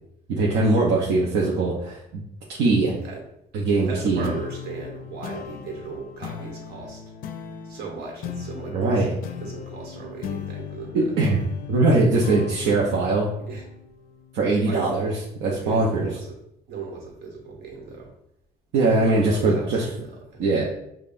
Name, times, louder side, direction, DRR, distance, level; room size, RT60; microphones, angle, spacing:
voice 1, 0.3-2.2 2.6-3.0 3.5-4.3 8.7-9.1 10.9-11.4 11.7-13.3 14.3-15.1 15.4-16.1 18.7-19.9 20.4-20.6, right 3 dB, 85° right, -4 dB, 0.7 m, -21 dB
voice 2, 3.9-7.0 7.6-9.0 9.4-11.1 12.2-12.3 12.6-12.8 13.5-13.6 14.6-15.1 15.6-16.4 16.7-18.1 18.9-20.4, right 4 dB, 70° right, -1 dB, 1.3 m, -36 dB
sound 1, 4.2-15.1, left 8 dB, 60° left, 0.4 m, -38 dB
5.3 x 2.3 x 2.5 m, 0.80 s
cardioid pair, 110°, 17 cm